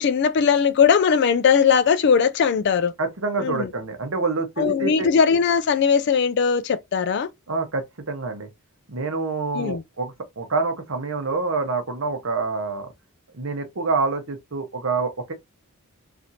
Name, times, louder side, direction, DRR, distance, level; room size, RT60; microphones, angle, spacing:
voice 1, 0.0-2.9 3.4-3.7 4.6-7.3 9.5-9.8, left 6 dB, 50° left, 0.3 m, -19 dB
voice 2, 3.0-5.1 7.5-8.5 8.9-12.9 13.3-15.3, right 4 dB, 65° right, 0.9 m, -27 dB
3.4 x 2.5 x 2.7 m
head